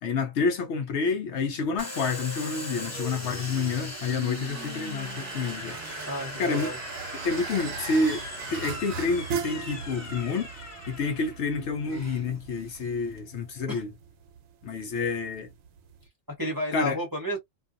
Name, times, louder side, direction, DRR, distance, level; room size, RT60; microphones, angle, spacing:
voice 1, 0.0-5.8 6.4-6.7 7.2-8.2 8.5-13.9 14.6-15.5 16.7-17.0, left 4 dB, 65° left, 0.8 m, -29 dB
Domestic sounds home sounds, 1.8-13.2, left 1 dB, 15° left, 0.8 m, -39 dB
sound 1, 2.8-16.1, right 7 dB, 90° right, 1.0 m, -40 dB
voice 2, 6.1-6.8 13.7-13.8 16.3-17.4, equal, 20° right, 0.7 m, -31 dB
2.5 x 2.3 x 2.5 m
omnidirectional pair, 1.3 m